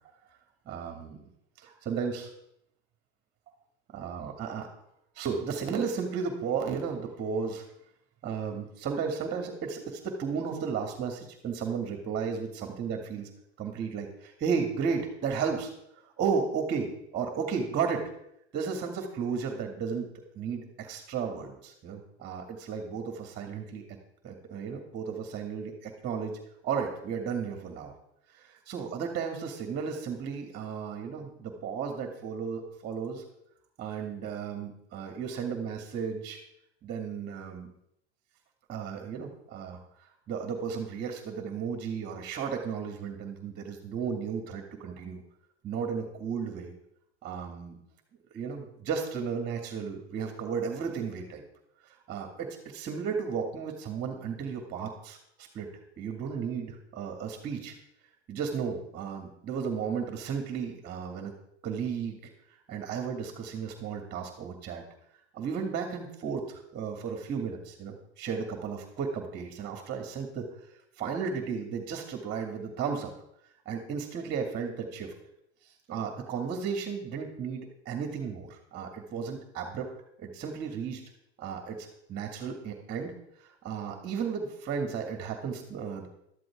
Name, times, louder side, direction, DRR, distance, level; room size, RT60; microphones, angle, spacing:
voice 1, 0.7-1.2 1.6-2.3 3.9-4.7 5.2-7.6 8.2-13.3 13.6-15.7 16.2-18.0 18.5-23.8 24.2-26.4 26.6-27.9 28.3-33.2 33.8-36.4 36.8-37.7 38.7-39.8 40.3-45.2 45.6-46.7 47.2-47.8 48.3-51.4 51.8-55.7 56.0-57.7 58.3-61.3 61.6-62.2 62.7-64.8 65.3-70.5 71.0-73.1 73.7-75.1 75.9-79.9 80.2-81.0 81.4-83.1 83.6-86.1, right 6 dB, 30° right, 3 dB, 2.4 m, -34 dB
13.0 x 13.0 x 3.7 m, 0.75 s
hypercardioid pair, 100°, 33 cm